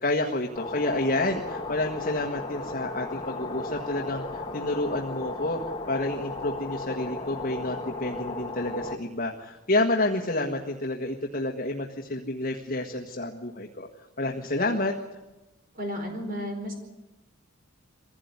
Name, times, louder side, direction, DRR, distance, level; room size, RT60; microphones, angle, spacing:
voice 1, 0.0-5.6 5.9-13.9 14.2-14.9, left 2 dB, 40° left, 1 dB, 1.6 m, -29 dB
sound 1, 0.6-9.0, left 2 dB, 20° left, 1.4 m, -35 dB
voice 2, 15.7-16.7, equal, 40° right, 4 dB, 4.6 m, -33 dB
23.0 x 16.5 x 9.6 m, 1.0 s
head